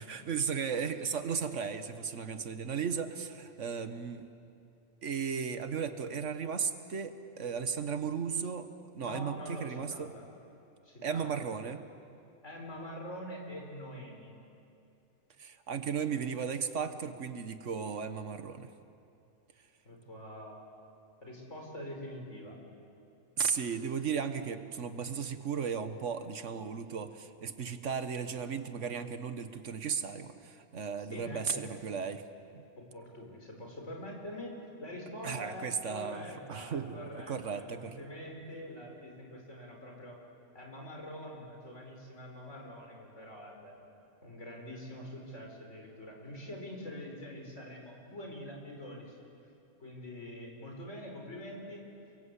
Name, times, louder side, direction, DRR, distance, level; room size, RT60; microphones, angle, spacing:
voice 1, 0.0-4.2 5.0-8.7 8.9-10.1 11.0-11.8 15.4-18.7 23.4-32.2 32.5-32.6 35.2-38.1, right 6 dB, 80° right, 9 dB, 1.5 m, -35 dB
voice 2, 9.0-10.3 10.8-11.5 12.4-14.3 19.9-20.7 21.2-22.6 31.1-31.8 32.8-40.2 40.5-43.8 44.2-49.2 49.8-51.8, left 1 dB, 75° left, 0 dB, 5.4 m, -45 dB
29.5 x 22.5 x 8.3 m, 2.7 s
omnidirectional pair, 1.2 m